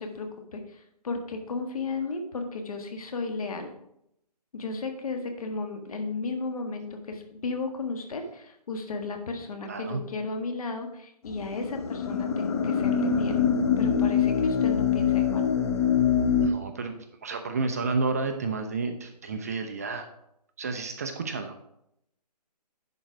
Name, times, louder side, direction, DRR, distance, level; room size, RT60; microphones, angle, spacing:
voice 1, 0.0-3.7 4.5-13.4 13.8-15.5, left 3 dB, 55° left, 5 dB, 1.6 m, -34 dB
voice 2, 9.7-10.0 16.4-16.9 17.2-20.1 20.6-21.6, right 4 dB, 25° right, 7 dB, 0.5 m, -31 dB
sound 1, 11.3-16.5, left 7 dB, 40° left, 0.8 m, -24 dB
10.5 x 4.4 x 4.9 m, 0.78 s
hypercardioid pair, 155°, 21 cm